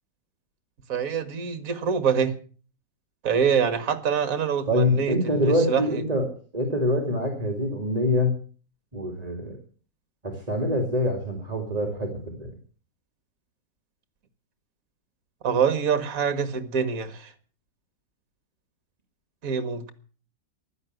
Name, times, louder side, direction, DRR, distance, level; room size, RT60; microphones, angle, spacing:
voice 1, 0.9-2.3 3.2-6.0 15.4-17.3 19.4-19.9, right 7 dB, 50° right, 2.0 m, -25 dB
voice 2, 4.7-8.3 8.9-9.6 10.2-12.5, left 1 dB, 20° right, 2.9 m, -25 dB
15.0 x 11.5 x 8.0 m
omnidirectional pair, 1.9 m